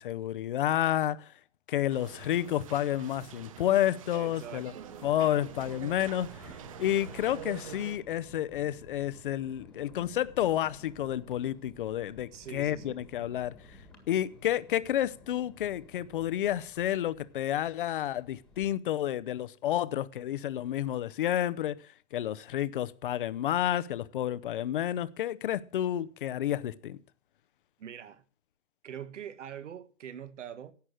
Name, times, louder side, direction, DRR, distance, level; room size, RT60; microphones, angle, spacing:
voice 1, 0.0-1.3 1.7-4.7 5.0-6.4 6.8-13.8 14.1-27.0, left 12 dB, 40° left, 0.7 m, -30 dB
sound 1, 1.9-8.0, right 9 dB, 25° right, 0.6 m, -46 dB
Thunder, 3.9-18.7, left 1 dB, ahead, 1.6 m, -54 dB
voice 2, 4.1-5.1 12.3-13.1 27.8-28.2 28.8-30.7, right 9 dB, 65° right, 1.7 m, -44 dB
11.5 x 8.4 x 7.6 m
hypercardioid pair, 170°, 38 cm